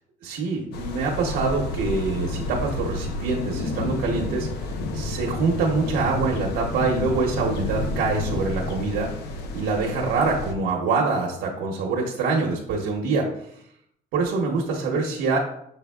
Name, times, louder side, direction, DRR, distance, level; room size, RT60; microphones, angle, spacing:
voice 1, 0.2-9.1 9.5-13.3 14.1-15.4, right 4 dB, 90° right, -2 dB, 0.9 m, -25 dB
sound 1, 0.7-10.5, left 2 dB, 75° left, 0.6 m, -30 dB
6.8 x 3.4 x 2.3 m, 0.72 s
cardioid pair, 110°, 17 cm